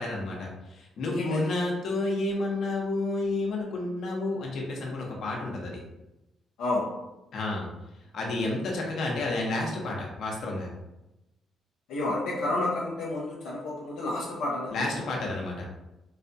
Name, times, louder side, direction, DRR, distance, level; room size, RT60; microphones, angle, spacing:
voice 1, 0.0-5.8 7.3-7.7 8.1-10.7 14.7-15.6, left 2 dB, 70° left, -1 dB, 0.9 m, -30 dB
voice 2, 1.1-1.5 6.6-6.9 11.9-14.9, left 2 dB, 90° left, -6 dB, 0.6 m, -30 dB
4.0 x 2.3 x 2.6 m, 0.95 s
cardioid pair, 90°, 0 cm